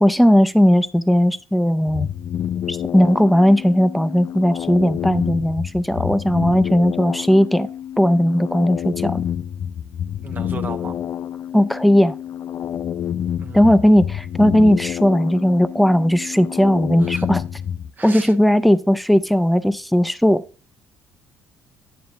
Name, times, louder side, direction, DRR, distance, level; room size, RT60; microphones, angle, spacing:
voice 1, 0.0-2.1 2.7-7.7 8.0-9.2 11.5-12.2 13.5-17.4 18.0-20.4, equal, ahead, 0.5 m, -17 dB
sound 1, 1.9-17.9, left 9 dB, 55° left, 0.3 m, -28 dB
voice 2, 10.2-11.0 13.4-14.0 17.0-17.3 18.0-18.3, right 4 dB, 35° right, 0.7 m, -36 dB
9.5 x 6.8 x 2.5 m
supercardioid pair, 85°, 6 cm